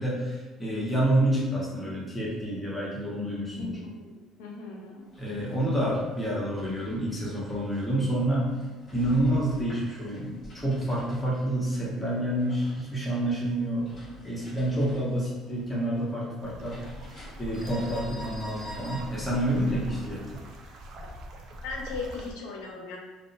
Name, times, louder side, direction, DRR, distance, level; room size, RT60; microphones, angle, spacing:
voice 1, 0.0-3.7 5.2-8.6 8.9-13.9 14.2-16.8 17.4-20.4, right 1 dB, 5° left, -6 dB, 0.9 m, -28 dB
voice 2, 3.6-5.1 21.5-23.0, left 4 dB, 85° left, -1 dB, 0.5 m, -38 dB
sound 1, 5.0-20.4, equal, 35° left, 1.3 m, -48 dB
sound 2, 16.4-22.3, equal, 60° right, 0.4 m, -42 dB
2.7 x 2.0 x 2.5 m, 1.2 s
supercardioid pair, 90°, 0 cm